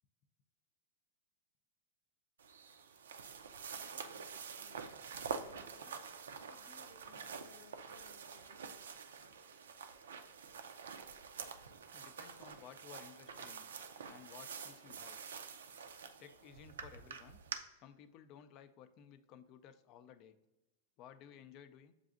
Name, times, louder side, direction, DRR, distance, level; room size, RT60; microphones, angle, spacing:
sound 1, 2.4-17.6, right 6 dB, 85° right, 0.4 m, -47 dB
voice 1, 3.7-4.9 5.4-6.0 6.4-8.9, left 3 dB, 80° left, 3 dB, 0.9 m, -64 dB
voice 2, 11.9-13.6 14.1-15.2 16.2-17.4 17.8-20.4 21.0-21.9, left 8 dB, 40° left, 11 dB, 0.3 m, -56 dB
7.0 x 2.5 x 2.5 m, 1.0 s
hypercardioid pair, 125°, 0 cm